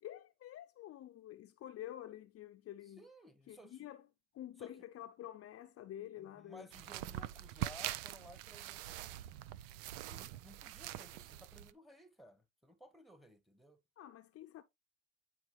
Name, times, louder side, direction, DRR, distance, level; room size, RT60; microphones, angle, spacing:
voice 1, 0.0-3.0 3.5-4.0 4.3-6.7 14.0-14.6, left 12 dB, 45° left, 0.7 m, -49 dB
voice 2, 2.8-3.9 4.6-4.7 6.2-9.2 10.1-13.8, equal, ahead, 1.4 m, -58 dB
sound 1, 6.7-11.7, right 14 dB, 85° right, 0.6 m, -44 dB
9.6 x 4.5 x 3.1 m
supercardioid pair, 105°, 32 cm